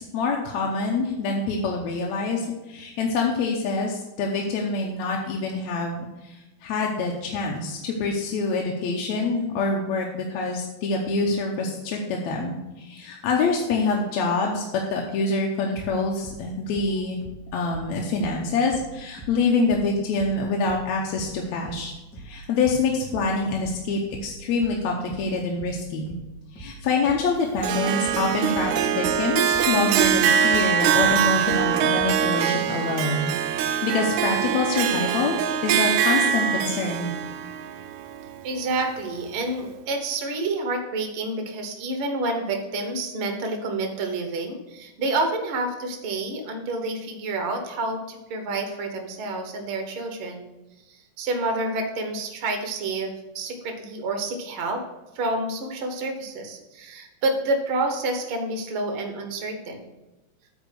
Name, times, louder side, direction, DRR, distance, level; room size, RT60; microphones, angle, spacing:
voice 1, 0.0-17.2 17.5-21.9 22.2-26.1 26.5-35.4 35.6-37.1, left 3 dB, 70° left, -1 dB, 2.0 m, -26 dB
sound 1, 15.7-18.9 19.2-32.2, right 3 dB, ahead, 2.7 m, -42 dB
Harp, 27.6-38.9, right 9 dB, 80° right, 1.8 m, -23 dB
voice 2, 38.4-50.5 50.9-54.8 55.1-59.8, right 2 dB, 60° right, 5 dB, 1.5 m, -28 dB
9.0 x 4.6 x 6.5 m, 1.0 s
omnidirectional pair, 3.6 m